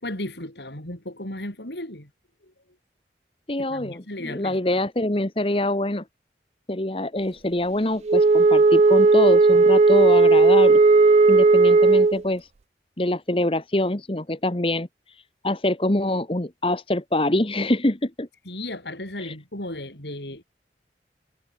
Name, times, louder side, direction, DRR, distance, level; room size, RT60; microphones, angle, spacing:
voice 1, 0.0-2.1 2.4-2.5 3.6-4.6 18.4-20.4, left 1 dB, 75° left, 6.7 m, -35 dB
voice 2, 3.5-6.0 6.7-10.8 11.3-12.5 13.0-14.9 15.4-18.3 19.2-19.3, left 1 dB, 30° left, 1.4 m, -25 dB
Wind instrument woodwind instrument, 8.1-12.2, right 3 dB, 40° right, 0.4 m, -15 dB
head